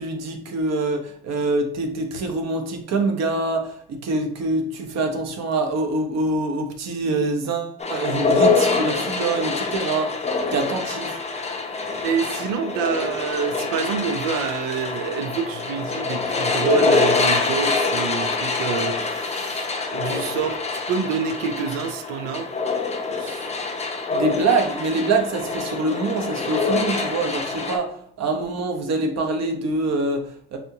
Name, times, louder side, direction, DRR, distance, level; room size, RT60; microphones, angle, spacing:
voice 1, 0.0-10.1 10.5-11.2 24.1-30.6, right 3 dB, 55° right, 5 dB, 0.8 m, -25 dB
sound 1, 7.8-27.8, left 3 dB, 20° left, 0.6 m, -25 dB
voice 2, 12.0-22.5 23.2-23.5, right 6 dB, 85° right, 10 dB, 0.5 m, -27 dB
4.2 x 2.6 x 2.8 m, 0.62 s
supercardioid pair, 85°, 31 cm